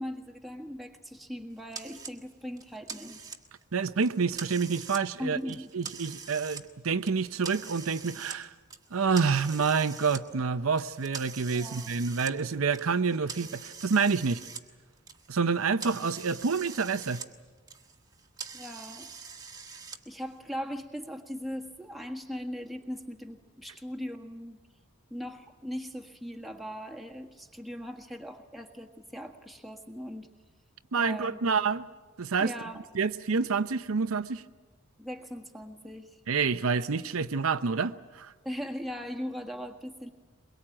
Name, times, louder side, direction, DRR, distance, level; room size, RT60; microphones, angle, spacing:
voice 1, 0.0-3.2 5.2-5.7 11.5-11.9 18.5-19.1 20.1-24.6 25.1-30.3 31.0-31.4 32.4-32.8 35.0-36.2 38.4-40.1, equal, ahead, 1.6 m, -39 dB
sound 1, 1.7-2.1 2.6-3.6 4.0-5.0 5.4-6.6 7.0-8.4 8.7-10.2 10.8-14.6 14.9-17.3 17.6-20.0, right 5 dB, 15° right, 1.3 m, -44 dB
voice 2, 3.7-5.4 5.7-8.5 8.9-14.4 15.3-17.2 30.9-31.9 32.2-32.5 32.9-34.4 36.3-38.3, right 5 dB, 75° right, 0.7 m, -28 dB
23.0 x 22.5 x 8.8 m
head